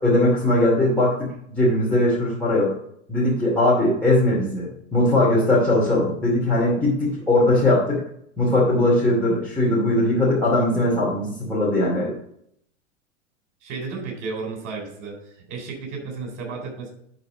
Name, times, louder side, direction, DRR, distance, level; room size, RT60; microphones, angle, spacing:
voice 1, 0.0-2.7 3.1-8.0 8.4-12.1, left 1 dB, 5° left, -8 dB, 2.7 m, -20 dB
voice 2, 13.6-15.2 15.5-16.9, right 4 dB, 45° right, 2 dB, 3.8 m, -33 dB
11.0 x 4.2 x 5.1 m, 0.71 s
hypercardioid pair, 110°, 38 cm